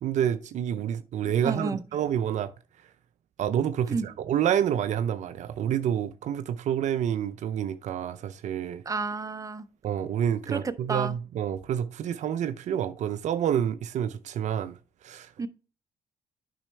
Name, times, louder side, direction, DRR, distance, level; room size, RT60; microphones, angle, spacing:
voice 1, 0.0-2.5 3.4-8.8 9.8-15.3, right 9 dB, 65° right, 0.5 m, -28 dB
voice 2, 1.3-1.8 3.9-4.1 8.9-9.7 10.5-11.1 15.4-15.5, right 4 dB, 25° right, 0.7 m, -31 dB
8.7 x 5.5 x 3.2 m
supercardioid pair, 55°, 13 cm